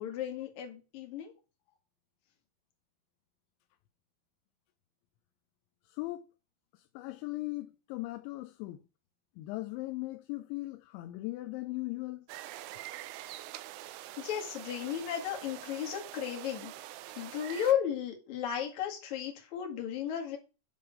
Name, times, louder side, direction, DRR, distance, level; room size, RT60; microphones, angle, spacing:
voice 1, 0.0-1.3 14.2-16.7 17.2-20.4, left 9 dB, 50° left, 2.3 m, -34 dB
voice 2, 5.9-6.3 6.7-8.8 9.4-12.3, left 20 dB, 85° left, 2.6 m, -38 dB
sound 1, 12.3-17.7, right 14 dB, 85° right, 3.3 m, -45 dB
10.5 x 3.8 x 6.5 m
omnidirectional pair, 5.9 m